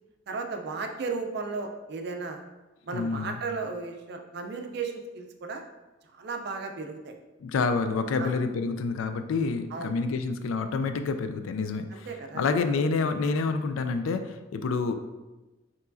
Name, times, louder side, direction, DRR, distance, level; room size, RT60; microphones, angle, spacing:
voice 1, 0.3-2.4 2.9-5.6 6.1-7.2 8.2-8.3 9.7-9.9 11.9-12.5, right 4 dB, 55° right, 4 dB, 0.4 m, -35 dB
voice 2, 2.9-3.4 7.4-12.1 12.3-14.9, left 4 dB, 80° left, 8 dB, 0.4 m, -28 dB
4.6 x 3.0 x 2.5 m, 1.1 s
head